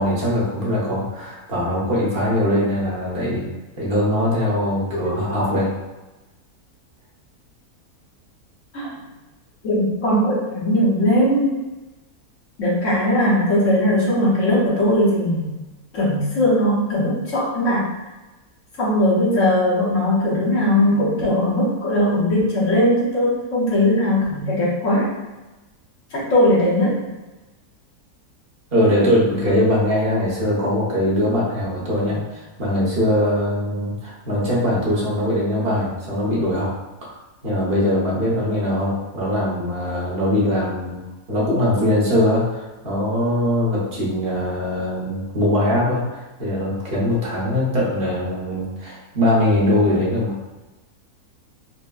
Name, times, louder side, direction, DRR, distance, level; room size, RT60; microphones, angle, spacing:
voice 1, 0.0-3.5 3.8-5.7 28.7-36.7 37.4-41.0 41.3-50.4, left 1 dB, 45° right, -6 dB, 1.0 m, -21 dB
voice 2, 9.6-11.6 12.6-15.5 15.9-17.9 18.8-25.1 26.1-27.0, left 1 dB, 60° left, -6 dB, 1.2 m, -19 dB
4.3 x 2.1 x 2.3 m, 1.1 s
omnidirectional pair, 1.6 m